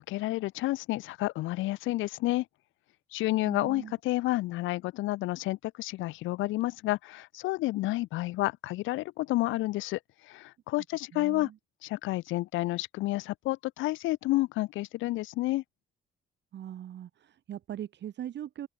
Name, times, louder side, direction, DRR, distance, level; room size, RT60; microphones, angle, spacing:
voice 1, 0.0-2.4 3.1-10.0 10.3-11.5 11.8-15.6, left 18 dB, 80° left, 0.4 m, -30 dB
voice 2, 3.4-3.9 11.1-11.5 16.5-18.7, right 10 dB, 60° right, 1.3 m, -40 dB
open air
cardioid pair, 90°, 20 cm